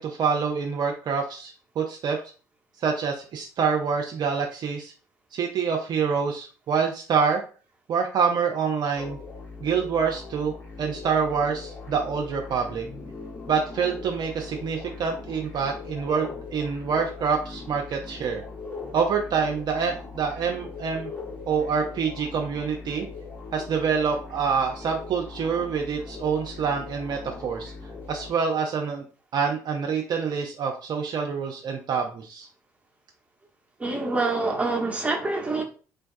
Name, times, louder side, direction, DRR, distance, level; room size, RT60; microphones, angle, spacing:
voice 1, 0.0-2.2 2.8-4.9 5.3-7.4 7.9-9.2 9.6-12.9 13.5-18.4 18.9-21.1 21.5-23.1 23.5-27.7 28.1-29.0 29.3-32.5, right 6 dB, 50° right, 2 dB, 0.5 m, -26 dB
sound 1, 9.0-28.3, left 4 dB, 25° left, 1.1 m, -40 dB
voice 2, 33.8-35.6, right 3 dB, 15° right, 0 dB, 1.0 m, -26 dB
3.8 x 2.2 x 2.5 m, 0.38 s
hypercardioid pair, 55°, 9 cm